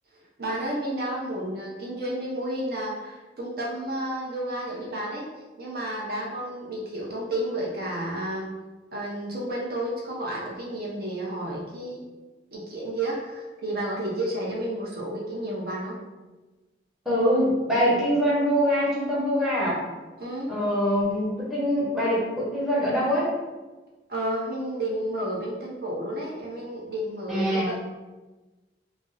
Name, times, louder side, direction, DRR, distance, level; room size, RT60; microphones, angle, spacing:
voice 1, 0.4-5.3 5.6-8.5 8.9-12.0 12.5-16.0 20.2-20.5 24.1-27.7, right 1 dB, 55° right, -4 dB, 0.6 m, -31 dB
voice 2, 17.0-19.8 20.5-23.3 27.3-27.7, equal, ahead, -8 dB, 0.7 m, -24 dB
2.5 x 2.0 x 3.7 m, 1.2 s
head